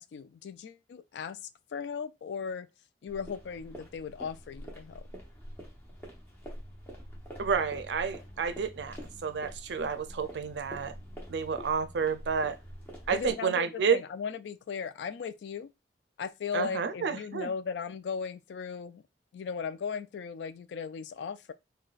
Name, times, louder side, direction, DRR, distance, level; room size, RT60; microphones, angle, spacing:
voice 1, 0.0-2.7 3.0-5.0 13.1-15.7 16.2-19.0 19.3-21.5, left 6 dB, 80° left, 0.3 m, -37 dB
sound 1, 3.1-13.3, equal, 15° left, 0.8 m, -46 dB
voice 2, 7.4-9.0 9.2-10.9 11.3-12.6 13.1-14.0 16.5-17.5, right 6 dB, 85° right, 0.4 m, -30 dB
3.9 x 2.2 x 2.4 m
head